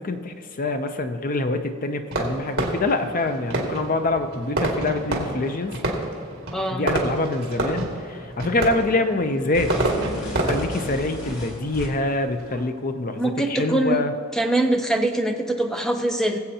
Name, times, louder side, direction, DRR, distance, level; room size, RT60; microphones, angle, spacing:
voice 1, 0.0-5.7 6.7-14.1, left 2 dB, 40° left, 7 dB, 0.6 m, -25 dB
Fireworks, 2.1-12.7, right 1 dB, 55° right, 2.2 m, -29 dB
voice 2, 6.5-6.9 13.2-14.0 14.3-16.4, right 1 dB, 5° left, 4 dB, 0.7 m, -23 dB
sound 1, 9.5-12.2, left 1 dB, 70° left, 2.4 m, -34 dB
20.5 x 8.1 x 2.9 m, 2.4 s
head